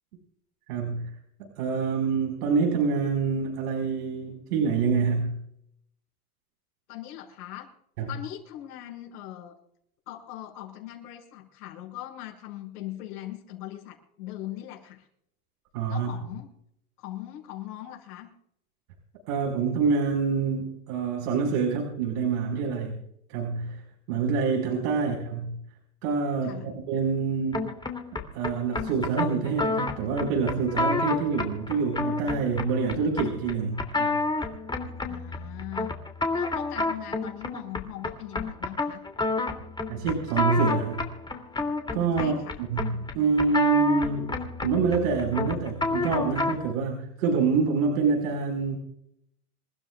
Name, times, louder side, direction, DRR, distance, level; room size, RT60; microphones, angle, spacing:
voice 1, 0.7-1.1 1.4-5.4 8.0-8.1 15.7-16.1 19.3-23.0 23.3-25.5 26.0-27.7 28.1-34.2 39.9-41.1 41.9-42.4 42.7-48.8, right 5 dB, 75° right, 0 dB, 5.4 m, -26 dB
voice 2, 6.9-7.7 8.1-9.6 10.1-15.1 15.9-16.5 17.0-18.3 26.4-26.7 35.1-36.0 36.3-39.0 42.1-42.6, left 13 dB, 75° left, -5 dB, 6.2 m, -40 dB
sound 1, 27.5-46.7, left 3 dB, 10° left, 2.9 m, -30 dB
28.0 x 15.0 x 2.5 m, 0.71 s
supercardioid pair, 115°, 46 cm